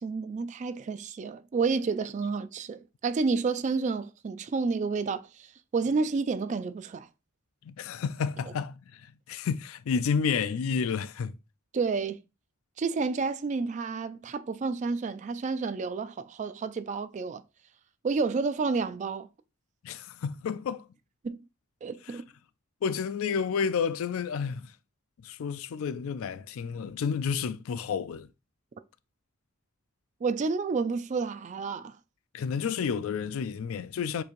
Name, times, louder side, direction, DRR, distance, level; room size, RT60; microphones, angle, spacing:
voice 1, 0.0-7.1 11.7-12.2 12.8-17.4 18.0-19.3 21.2-21.4 21.8-22.3 30.2-32.0, right 4 dB, 35° right, 0.3 m, -30 dB
voice 2, 7.6-11.4 19.8-20.9 22.1-22.2 22.8-24.7 25.2-28.3 32.3-34.2, left 6 dB, 70° left, 0.4 m, -30 dB
6.9 x 3.1 x 2.5 m
head